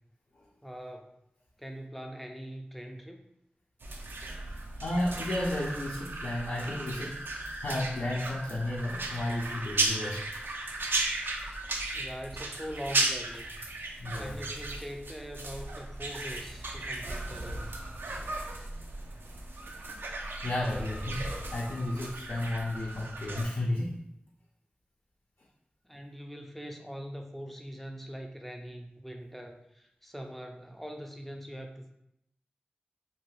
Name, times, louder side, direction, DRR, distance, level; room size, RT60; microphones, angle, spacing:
voice 1, 0.6-1.1 1.6-3.2 11.9-17.8 25.8-31.9, equal, 5° left, 2 dB, 0.4 m, -42 dB
sound 1, 3.8-23.4, right 2 dB, 80° right, 0.4 m, -36 dB
voice 2, 4.8-10.3 14.0-14.4 20.4-24.0, left 1 dB, 75° left, -5 dB, 0.5 m, -33 dB
2.6 x 2.3 x 3.1 m, 0.77 s
wide cardioid pair, 50°, 4 cm